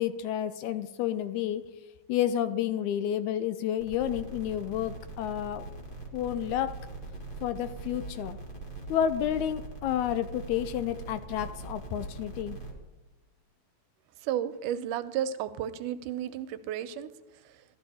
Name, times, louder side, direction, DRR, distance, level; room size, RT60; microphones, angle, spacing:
voice 1, 0.0-1.6 2.1-5.7 6.1-6.8 7.4-8.4 8.9-12.6, left 10 dB, 80° left, 12 dB, 1.8 m, -30 dB
sound 1, 3.8-12.7, right 2 dB, 25° left, 1.3 m, -42 dB
voice 2, 14.2-17.7, right 10 dB, 85° right, 12 dB, 2.2 m, -33 dB
13.0 x 13.0 x 4.2 m, 1.1 s
omnidirectional pair, 3.6 m